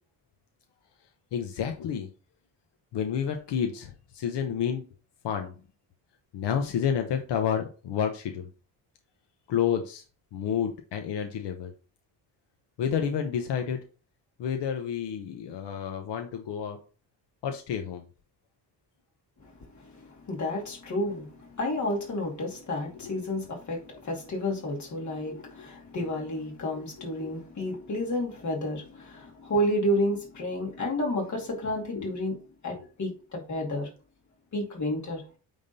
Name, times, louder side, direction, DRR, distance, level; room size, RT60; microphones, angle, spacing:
voice 1, 1.3-2.1 2.9-4.9 5.2-5.5 6.3-8.5 9.5-10.0 10.3-11.7 12.8-13.8 14.4-16.8 17.4-18.0 23.0-23.3 25.3-25.4 26.7-26.8 27.2-27.3 32.0-32.2 32.7-32.8, left 8 dB, 80° left, 1.0 m, -30 dB
voice 2, 19.4-32.4 32.6-33.9 34.5-35.2, left 1 dB, 45° left, 2.5 m, -31 dB
8.8 x 3.7 x 4.1 m
cardioid pair, 145°, 41 cm